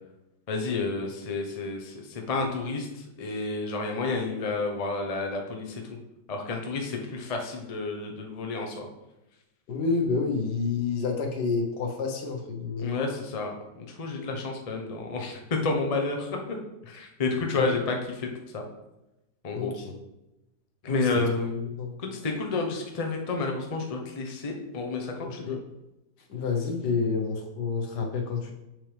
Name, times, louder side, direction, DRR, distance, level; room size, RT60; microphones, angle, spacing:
voice 1, 0.5-2.9 3.2-5.8 6.3-8.9 12.8-13.5 13.9-16.4 16.8-18.6 19.4-19.7 20.8-25.6, left 3 dB, 35° left, 2 dB, 0.6 m, -30 dB
voice 2, 9.7-13.0 17.6-17.7 19.5-19.9 20.9-21.2 21.8-21.9 25.2-25.6 26.3-28.5, left 4 dB, 70° left, 2 dB, 1.6 m, -29 dB
6.7 x 6.2 x 3.4 m, 0.93 s
omnidirectional pair, 1.9 m